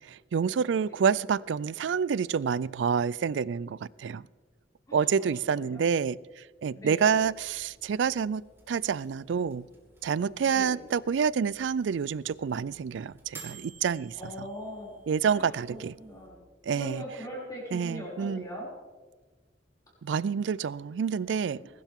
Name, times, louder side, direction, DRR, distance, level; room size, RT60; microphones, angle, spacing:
voice 1, 0.0-4.2 4.9-6.2 6.6-9.6 10.0-14.1 15.1-15.9 16.7-17.0 17.7-18.4 20.0-21.6, right 6 dB, 75° right, 0.4 m, -28 dB
voice 2, 4.9-5.8 6.7-7.1 10.4-10.8 14.2-15.0 15.3-16.4 16.7-18.7 21.6-21.7, equal, 20° left, 5.8 m, -41 dB
sound 1, 7.2-16.3, right 5 dB, 15° right, 2.6 m, -54 dB
21.0 x 12.0 x 3.7 m
head